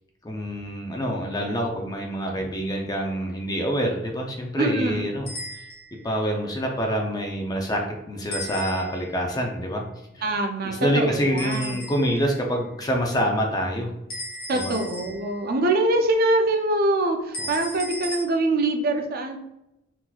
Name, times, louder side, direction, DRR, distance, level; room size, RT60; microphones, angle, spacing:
voice 1, 0.2-5.3 5.5-5.6 6.0-9.8 10.1-10.2 10.6-13.9 14.5-14.7, equal, 20° left, 1 dB, 0.4 m, -26 dB
voice 2, 4.6-5.0 10.2-11.8 14.5-19.4, right 2 dB, 45° right, 4 dB, 0.4 m, -24 dB
sound 1, 5.3-6.0 8.3-9.2 11.4-12.3 14.1-15.5 17.3-18.2, left 1 dB, 45° left, 1.0 m, -36 dB
3.8 x 2.8 x 2.3 m, 0.89 s
head